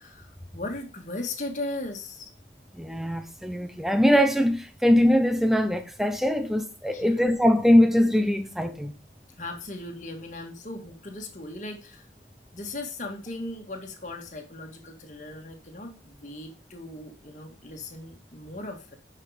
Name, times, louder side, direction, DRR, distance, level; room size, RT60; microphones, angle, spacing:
voice 1, 0.0-2.3 6.9-7.2 9.4-12.1 12.5-18.9, left 2 dB, 40° left, 2.0 m, -38 dB
voice 2, 2.7-8.9, equal, ahead, 0.9 m, -22 dB
9.9 x 5.8 x 5.0 m
head